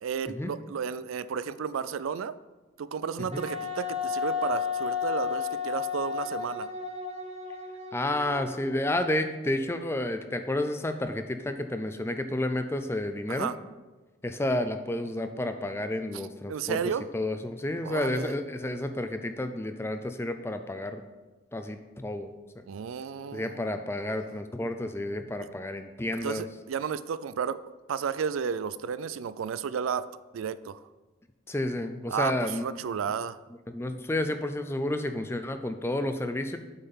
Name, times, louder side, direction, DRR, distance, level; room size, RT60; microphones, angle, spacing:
voice 1, 0.0-2.3 2.8-6.7 13.3-13.6 16.1-16.2 16.5-17.0 17.8-18.3 22.7-23.6 26.2-27.6 27.9-30.1 30.3-30.8 32.1-33.4, right 7 dB, 90° right, 15 dB, 0.4 m, -32 dB
Wind instrument woodwind instrument, 3.3-8.8, left 6 dB, 30° right, 0.8 m, -33 dB
voice 2, 7.9-13.5 14.2-16.8 17.1-21.0 21.5-22.3 23.3-26.4 31.5-32.7 33.7-36.6, left 1 dB, 10° left, 8 dB, 0.4 m, -31 dB
7.9 x 5.6 x 5.5 m, 1.2 s
head